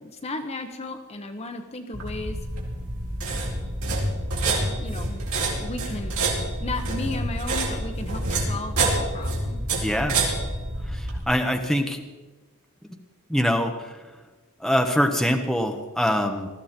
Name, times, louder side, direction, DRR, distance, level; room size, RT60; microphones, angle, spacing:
voice 1, 0.0-2.4 4.4-5.2 5.5-6.1 6.6-9.6, left 2 dB, 30° left, 6 dB, 1.0 m, -35 dB
sound 1, 1.9-11.2, right 2 dB, 70° right, 4.2 m, -27 dB
voice 2, 9.8-10.2 10.9-12.0 13.3-14.0 14.6-16.5, equal, ahead, 3 dB, 1.2 m, -24 dB
20.0 x 14.0 x 4.4 m, 1.2 s
head